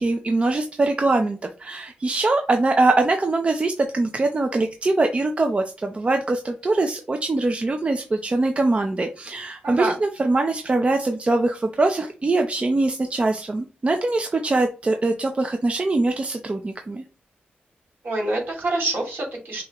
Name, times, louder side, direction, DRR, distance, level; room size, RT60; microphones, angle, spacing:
voice 1, 0.0-17.0, right 2 dB, 35° right, 4 dB, 0.5 m, -22 dB
voice 2, 9.6-10.0 18.0-19.6, right 2 dB, 65° right, -1 dB, 2.4 m, -26 dB
6.1 x 2.4 x 2.9 m, 0.34 s
cardioid pair, 85°, 4 cm